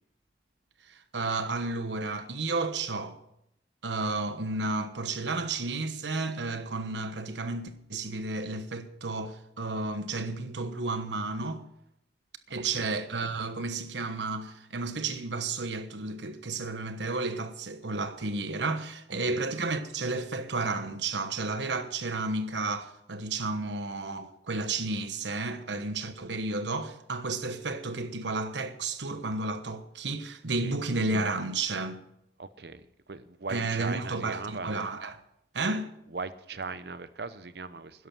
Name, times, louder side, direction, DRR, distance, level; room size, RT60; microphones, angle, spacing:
voice 1, 0.9-3.2 3.8-11.6 12.5-32.0 33.5-35.2 35.5-35.9, right 3 dB, 90° right, 1.2 m, -32 dB
voice 2, 32.4-32.8 33.1-34.7 36.1-38.1, right 4 dB, 65° right, 0.8 m, -39 dB
12.5 x 11.0 x 6.1 m
head